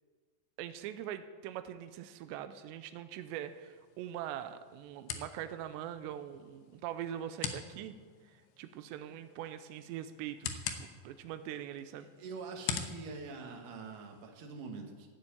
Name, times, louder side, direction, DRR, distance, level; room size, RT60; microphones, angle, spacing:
voice 1, 0.6-8.0 8.3-10.5 10.8-12.1, right 11 dB, 90° right, 10 dB, 2.9 m, -42 dB
sound 1, 3.3-14.3, left 7 dB, 80° left, 3.2 m, -45 dB
voice 2, 12.0-15.1, right 4 dB, 55° right, 2 dB, 3.0 m, -45 dB
15.0 x 7.6 x 8.7 m, 1.5 s
omnidirectional pair, 4.9 m